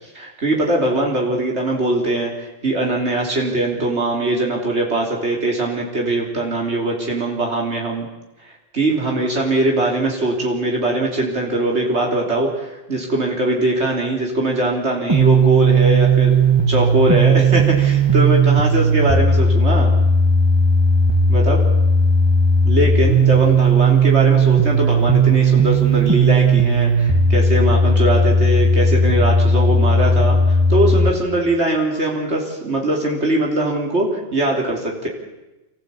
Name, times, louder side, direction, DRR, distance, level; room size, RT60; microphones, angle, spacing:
voice 1, 0.1-8.1 8.7-16.4 16.7-19.9 21.3-21.6 22.6-35.1, right 1 dB, 90° right, 0 dB, 3.7 m, -21 dB
sound 1, 15.1-31.1, right 2 dB, 25° right, 1.1 m, -15 dB
25.5 x 15.0 x 8.4 m, 1.0 s
omnidirectional pair, 1.1 m